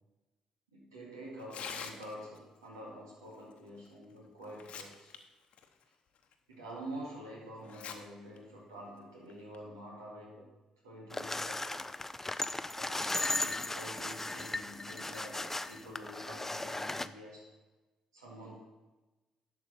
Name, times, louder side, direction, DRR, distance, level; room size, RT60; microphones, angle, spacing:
voice 1, 0.7-5.1 6.5-10.5 10.8-11.8 12.7-17.5 18.1-18.5, right 1 dB, 85° right, -4 dB, 2.1 m, -47 dB
Tearing, 1.4-2.4 3.9-4.0 4.4-5.2 5.5-5.6 6.3-6.4 7.6-8.0 8.4-8.5 9.3-9.6, left 7 dB, 55° left, 0.9 m, -44 dB
sound 1, 11.1-17.1, left 2 dB, 15° left, 0.4 m, -36 dB
11.0 x 6.9 x 4.2 m, 1.1 s
figure-of-eight pair, 45°, 2 cm